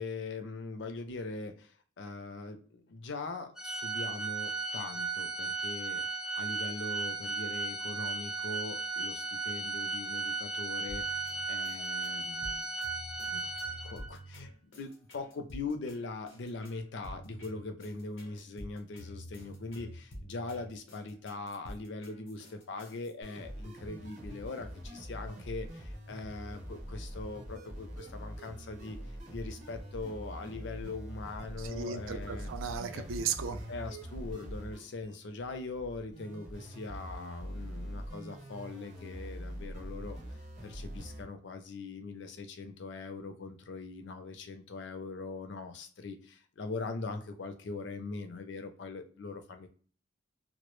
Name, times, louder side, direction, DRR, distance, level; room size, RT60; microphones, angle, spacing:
voice 1, 0.0-1.7 2.0-6.0 6.4-11.1 11.5-12.7 13.3-13.6 13.8-14.5 14.8-29.0 29.3-32.5 32.9-33.0 33.7-40.2 40.6-49.7, left 3 dB, 65° left, 7 dB, 0.4 m, -41 dB
Organ, 3.6-14.2, right 4 dB, ahead, 0.4 m, -36 dB
sound 1, 10.9-23.1, equal, 90° left, 0.8 m, -48 dB
sound 2, 23.2-41.2, equal, 35° right, 0.7 m, -44 dB
voice 2, 31.6-33.7, right 6 dB, 85° right, 9 dB, 0.4 m, -36 dB
2.1 x 2.0 x 3.0 m, 0.42 s
head